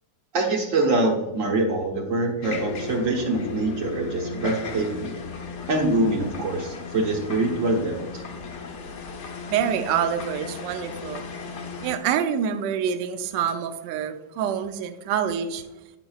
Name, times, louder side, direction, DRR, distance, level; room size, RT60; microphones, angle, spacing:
voice 1, 0.3-5.1 5.7-8.0, right 2 dB, 55° right, 2 dB, 1.0 m, -24 dB
sound 1, 2.4-12.0, left 5 dB, 70° left, 0.6 m, -35 dB
voice 2, 9.5-11.2 11.8-15.6, right 8 dB, 75° right, 8 dB, 1.2 m, -26 dB
8.6 x 5.9 x 2.3 m, 0.99 s
omnidirectional pair, 2.1 m